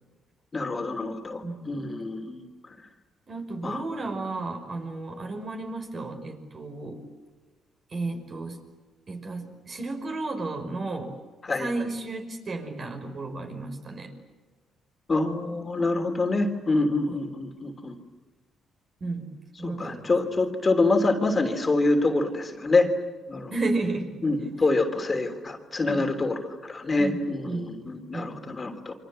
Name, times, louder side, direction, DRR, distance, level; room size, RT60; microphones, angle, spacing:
voice 1, 0.5-2.4 2.7-2.8 3.6-3.8 11.4-11.7 15.1-17.9 19.6-22.9 23.3-23.5 24.2-28.9, left 2 dB, 30° left, 5 dB, 3.2 m, -26 dB
voice 2, 1.4-1.8 3.3-7.0 7.9-8.6 9.1-11.1 11.6-14.1 17.1-17.2 19.0-19.3 19.6-20.1 23.5-24.1 24.4-24.5 25.9-26.1 27.0-28.6, right 3 dB, 45° right, 4 dB, 5.6 m, -33 dB
30.0 x 24.5 x 7.6 m, 1.3 s
cardioid pair, 90°, 0 cm